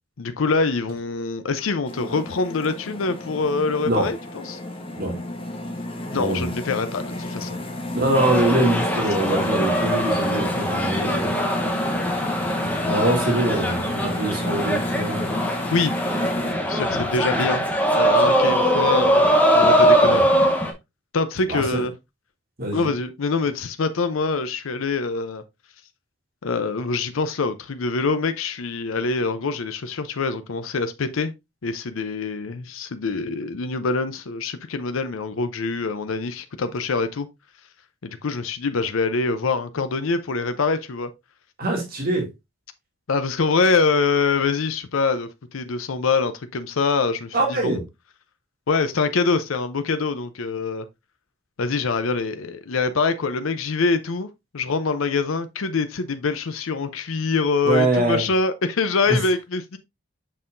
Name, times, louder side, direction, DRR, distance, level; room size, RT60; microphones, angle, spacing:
voice 1, 0.2-4.6 6.1-7.6 15.7-15.9 16.7-17.7 18.0-20.2 21.1-21.9 22.7-25.4 26.4-31.3 31.6-37.3 38.0-41.1 43.1-47.8 48.7-50.8 51.6-54.3 54.5-59.8, left 4 dB, 75° left, 0.6 m, -24 dB
sound 1, 1.9-16.5, left 1 dB, 25° left, 1.0 m, -31 dB
voice 2, 6.1-6.5 7.9-11.4 12.5-15.3 20.0-20.2 21.5-21.8 22.6-22.9 41.6-42.3 47.3-47.8 57.6-58.3, right 2 dB, 45° right, 2.4 m, -24 dB
sound 2, 8.1-20.7, equal, 10° left, 0.9 m, -21 dB
6.6 x 5.6 x 2.5 m
head